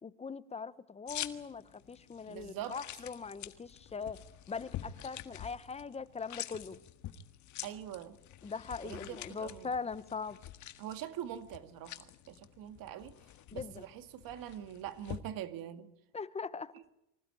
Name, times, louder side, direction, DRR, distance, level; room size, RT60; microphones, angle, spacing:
voice 1, 0.0-6.8 8.4-10.4 13.5-13.8 16.1-16.7, left 5 dB, 15° left, 0.9 m, -41 dB
sound 1, 1.1-15.2, left 12 dB, 45° left, 1.7 m, -47 dB
voice 2, 2.3-2.8 7.6-8.2 8.8-9.7 10.8-13.1 13.5-15.9, right 11 dB, 55° right, 2.3 m, -43 dB
25.0 x 16.0 x 10.0 m
supercardioid pair, 130°, 41 cm